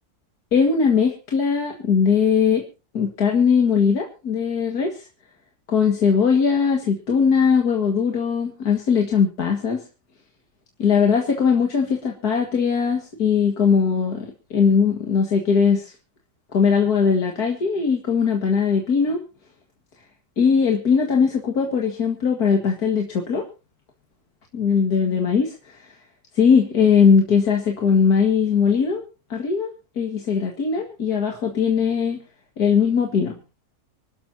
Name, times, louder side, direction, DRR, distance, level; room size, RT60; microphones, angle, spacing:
voice 1, 0.5-2.6 2.9-5.1 5.7-9.8 10.8-15.9 16.5-19.2 20.4-23.5 24.5-25.8 26.3-29.0 29.3-32.2 32.6-33.4, left 6 dB, 70° left, 2 dB, 2.4 m, -20 dB
26.0 x 12.0 x 2.8 m, 0.32 s
omnidirectional pair, 1.7 m